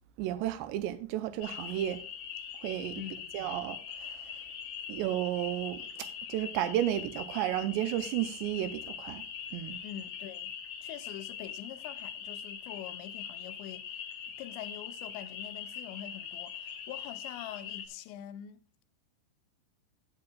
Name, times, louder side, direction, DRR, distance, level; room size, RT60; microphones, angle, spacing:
voice 1, 0.2-2.0 2.6-3.0 3.3-4.1 4.9-9.2 9.5-9.8, right 12 dB, 85° right, 2.6 m, -33 dB
sound 1, 1.4-17.9, left 8 dB, 65° left, 2.1 m, -42 dB
voice 2, 2.9-3.4 9.8-10.6 10.8-14.0 14.4-18.6, left 11 dB, 85° left, 2.7 m, -45 dB
15.5 x 7.7 x 2.3 m
omnidirectional pair, 5.3 m